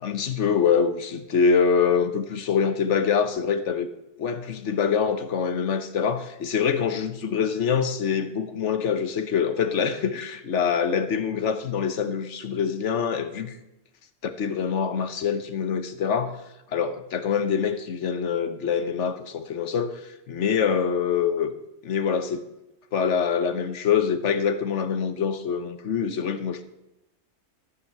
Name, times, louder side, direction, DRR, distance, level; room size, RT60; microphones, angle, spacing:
voice 1, 0.0-3.9 4.2-13.6 14.2-16.4 16.7-21.5 21.8-22.4 22.9-26.6, left 6 dB, 70° left, 10 dB, 1.3 m, -25 dB
14.0 x 5.9 x 7.9 m, 0.93 s
omnidirectional pair, 1.3 m